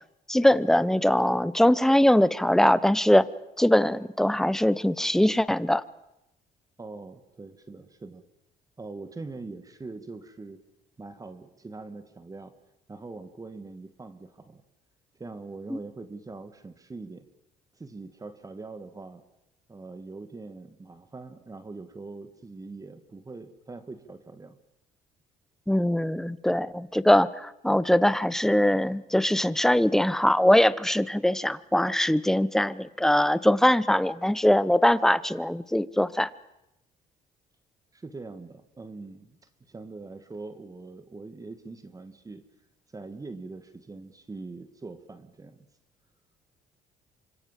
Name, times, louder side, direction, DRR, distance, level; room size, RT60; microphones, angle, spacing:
voice 1, 0.3-3.3 3.6-5.8 15.7-15.8 25.7-36.3, left 1 dB, ahead, 16 dB, 1.1 m, -22 dB
voice 2, 6.8-8.2 8.8-10.6 11.0-12.5 12.9-14.6 15.2-17.3 17.8-19.2 19.7-24.6 37.9-39.4 39.7-42.4 42.9-45.7, right 3 dB, 20° right, 10 dB, 2.2 m, -42 dB
28.0 x 26.0 x 7.6 m, 0.87 s
cardioid pair, 110°, 17 cm